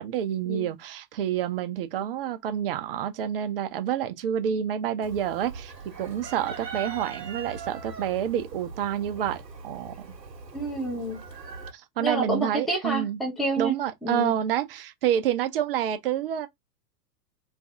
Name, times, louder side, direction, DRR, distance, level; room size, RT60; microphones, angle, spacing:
voice 1, 0.0-10.1 11.7-13.2 13.6-16.5, right 10 dB, 40° right, 0.5 m, -28 dB
Chicken rooster, 5.0-11.7, right 4 dB, 80° right, 0.9 m, -40 dB
voice 2, 10.5-11.2 12.0-13.7 14.0-14.3, right 1 dB, ahead, 0.6 m, -28 dB
2.6 x 2.4 x 3.5 m
figure-of-eight pair, 95°, 48 cm